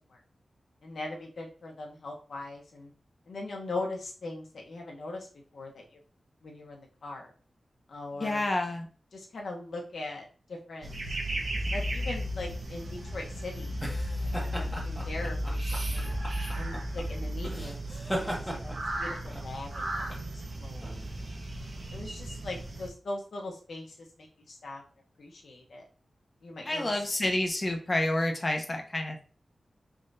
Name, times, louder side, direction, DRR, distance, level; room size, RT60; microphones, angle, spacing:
voice 1, 0.8-2.9 3.3-5.3 5.5-5.8 6.4-7.3 7.9-8.5 9.1-10.3 10.7-11.2 11.7-13.8 14.2-15.6 15.9-16.1 16.6-18.7 19.0-20.0 20.6-21.4 21.9-23.9 24.2-24.8 25.2-25.8 26.4-26.8, left 2 dB, 80° left, 0 dB, 1.0 m, -40 dB
voice 2, 8.2-8.9 26.6-29.2, left 1 dB, 30° left, 3 dB, 0.8 m, -29 dB
sound 1, 10.8-22.9, right 1 dB, 60° right, 1.1 m, -34 dB
sound 2, 13.0-21.9, equal, 5° left, 1.1 m, -39 dB
4.5 x 3.7 x 2.6 m, 0.39 s
wide cardioid pair, 115°, 0 cm